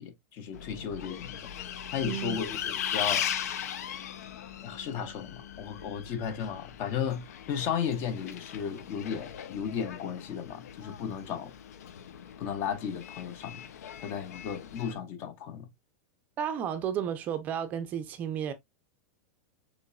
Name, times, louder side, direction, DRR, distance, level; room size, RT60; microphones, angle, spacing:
voice 1, 0.0-1.5 1.9-3.2 4.6-11.5 12.4-13.6 14.0-15.7, left 7 dB, 30° left, 0.5 m, -34 dB
Bus, 0.5-14.9, left 9 dB, 85° left, 0.6 m, -39 dB
voice 2, 2.0-2.4 16.4-18.5, right 9 dB, 20° right, 0.5 m, -32 dB
6.8 x 3.0 x 2.3 m
supercardioid pair, 180°, 8 cm